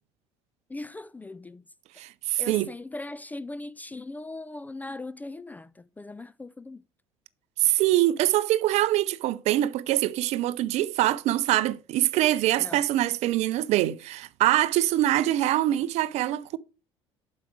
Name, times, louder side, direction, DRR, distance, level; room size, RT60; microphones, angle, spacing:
voice 1, 0.7-1.6 2.4-6.8 12.6-12.8, left 2 dB, 10° left, 0.4 m, -39 dB
voice 2, 2.0-2.7 7.6-16.6, right 14 dB, 45° right, 0.5 m, -24 dB
7.8 x 6.0 x 4.6 m
figure-of-eight pair, 60°, 15 cm